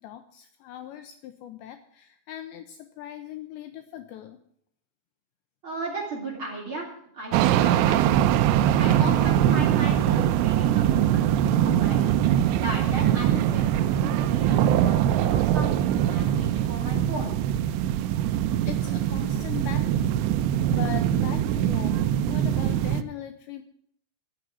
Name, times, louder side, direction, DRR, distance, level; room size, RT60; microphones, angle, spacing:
voice 1, 0.0-4.4 17.9-18.0 18.5-20.1 20.7-23.6, left 11 dB, 80° left, 8 dB, 2.6 m, -40 dB
voice 2, 5.6-6.9 7.1-8.1 8.8-12.0 12.5-17.4, right 2 dB, 30° right, -2 dB, 2.9 m, -35 dB
sound 1, 7.3-23.0, right 11 dB, 90° right, 2.4 m, -22 dB
14.0 x 7.6 x 9.6 m, 0.67 s
omnidirectional pair, 5.8 m